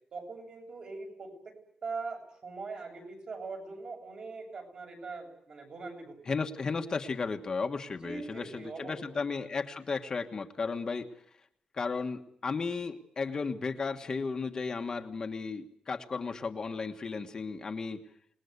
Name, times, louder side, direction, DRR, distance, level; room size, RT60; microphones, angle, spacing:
voice 1, 0.1-1.5 1.8-6.5 8.0-9.2, right 4 dB, 45° right, 3 dB, 8.0 m, -42 dB
voice 2, 6.3-11.1 11.7-18.0, left 4 dB, 30° left, 5 dB, 1.5 m, -34 dB
27.5 x 20.5 x 8.2 m, 0.67 s
wide cardioid pair, 165°, 2 cm